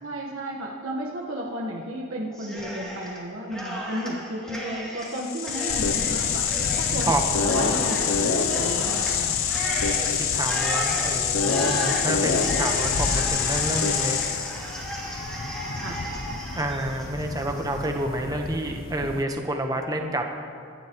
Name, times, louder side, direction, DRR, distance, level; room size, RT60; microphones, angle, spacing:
voice 1, 0.0-6.4 6.8-9.4 15.8-16.0, right 1 dB, 80° right, -3 dB, 1.4 m, -33 dB
Cheering, 2.3-3.2 3.5-17.9, equal, 5° left, 2.7 m, -34 dB
sound 1, 5.1-14.7, left 7 dB, 80° left, 0.7 m, -25 dB
sound 2, 5.7-19.2, left 3 dB, 45° left, 0.5 m, -35 dB
voice 2, 10.1-14.2 16.5-20.2, right 1 dB, 20° right, 3 dB, 1.1 m, -29 dB
24.5 x 11.5 x 3.1 m, 2.3 s
head